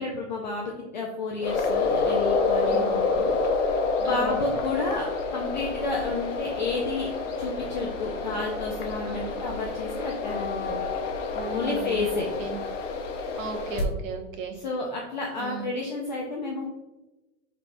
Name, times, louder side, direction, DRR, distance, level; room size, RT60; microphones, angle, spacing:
voice 1, 0.0-3.4 4.0-5.1 5.3-7.1 7.4-10.7 11.5-12.3 14.5-16.6, left 3 dB, 40° left, -1 dB, 0.4 m, -31 dB
sound 1, 1.4-13.8, left 4 dB, 75° left, 0.8 m, -28 dB
voice 2, 2.6-2.9 4.0-4.4 9.1-9.3 11.3-12.6 13.4-14.6 15.4-15.7, right 4 dB, 85° right, 4 dB, 1.0 m, -36 dB
5.1 x 3.3 x 2.5 m, 1.1 s
supercardioid pair, 175°, 38 cm